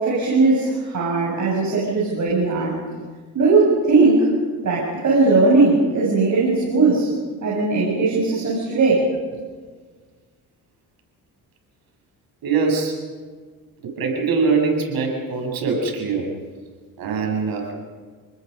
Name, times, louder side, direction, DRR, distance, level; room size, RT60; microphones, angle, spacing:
voice 1, 0.0-2.8 3.3-4.3 4.6-7.1 7.4-9.1, right 3 dB, 50° right, -4 dB, 7.8 m, -18 dB
voice 2, 12.4-13.0 13.8-16.3 17.0-17.7, right 4 dB, 75° right, 1 dB, 7.3 m, -22 dB
30.0 x 20.0 x 5.5 m, 1.5 s
cardioid pair, 105°, 37 cm